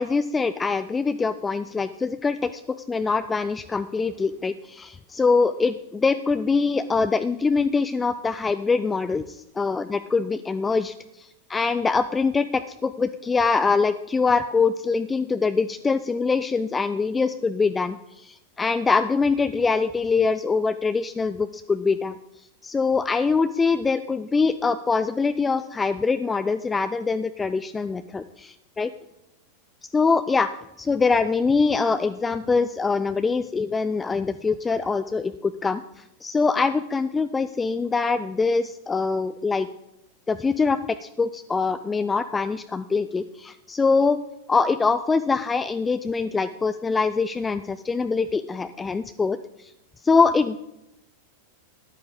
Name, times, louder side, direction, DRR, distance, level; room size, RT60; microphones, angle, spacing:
voice 1, 0.0-2.6 2.9-9.8 10.1-22.1 22.6-28.9 29.9-30.5 30.8-39.7 40.3-44.2 44.5-49.7 50.0-50.6, left 4 dB, 15° left, 11 dB, 0.4 m, -23 dB
13.5 x 9.9 x 5.3 m, 0.87 s
figure-of-eight pair, 90°, 0 cm